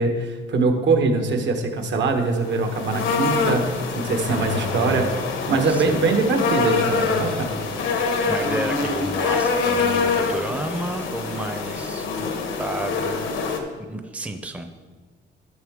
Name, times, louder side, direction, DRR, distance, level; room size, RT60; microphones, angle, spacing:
voice 1, 0.0-5.1 5.5-7.6, right 3 dB, 65° right, 5 dB, 1.2 m, -22 dB
sound 1, 2.4-13.6, left 4 dB, 85° left, 1.1 m, -25 dB
voice 2, 4.3-5.1 5.5-6.0 8.3-13.6 13.9-14.7, right 1 dB, 5° right, 7 dB, 0.6 m, -32 dB
11.0 x 5.6 x 3.6 m, 1.4 s
cardioid pair, 90°, 20 cm